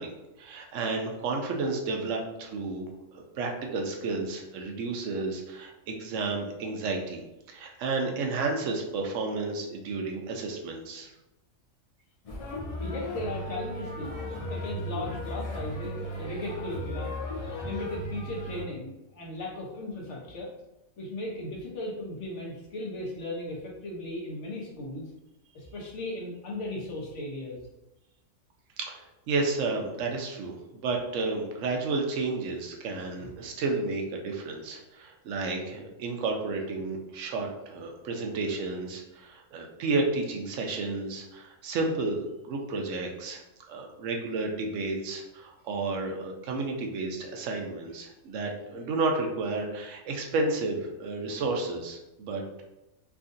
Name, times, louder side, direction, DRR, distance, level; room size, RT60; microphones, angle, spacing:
voice 1, 0.0-11.1 28.8-43.4 43.7-52.6, right 3 dB, 70° right, 2 dB, 0.9 m, -32 dB
sound 1, 12.2-18.6, equal, 45° left, 0.5 m, -35 dB
voice 2, 12.8-14.2 14.5-17.1 17.6-20.5 21.0-25.0 25.5-27.6 33.2-33.3, left 1 dB, 65° left, -3 dB, 1.1 m, -37 dB
3.6 x 2.4 x 2.5 m, 0.97 s
omnidirectional pair, 1.4 m